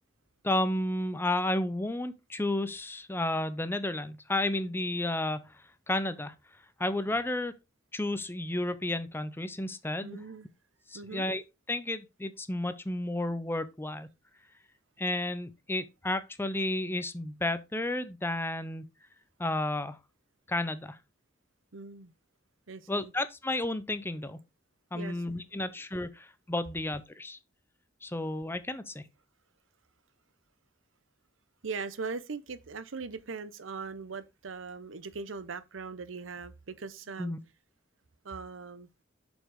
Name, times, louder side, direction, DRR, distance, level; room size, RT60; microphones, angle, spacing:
voice 1, 0.4-6.3 6.8-7.5 7.9-10.2 10.9-11.4 11.7-14.1 15.0-18.9 19.4-20.0 20.5-21.0 22.9-24.4 24.9-27.4 28.0-29.1 37.2-37.4, left 1 dB, 10° left, 0.7 m, -32 dB
voice 2, 10.0-10.5 10.9-11.3 21.7-22.1 22.7-23.1 24.9-25.4 31.6-37.3 38.2-38.9, right 4 dB, 80° right, 0.8 m, -40 dB
7.4 x 5.3 x 4.8 m
head